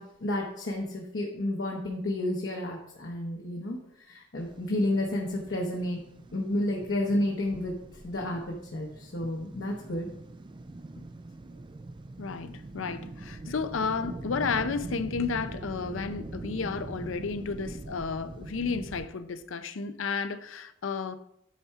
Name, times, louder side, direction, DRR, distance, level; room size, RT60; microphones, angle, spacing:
voice 1, 0.0-6.0 6.3-7.8 8.0-10.1, left 1 dB, 60° left, 1.1 m, -31 dB
sound 1, 4.4-19.1, right 2 dB, 25° right, 0.4 m, -43 dB
voice 2, 12.2-21.2, left 5 dB, 80° left, 0.6 m, -32 dB
9.2 x 4.3 x 4.6 m
head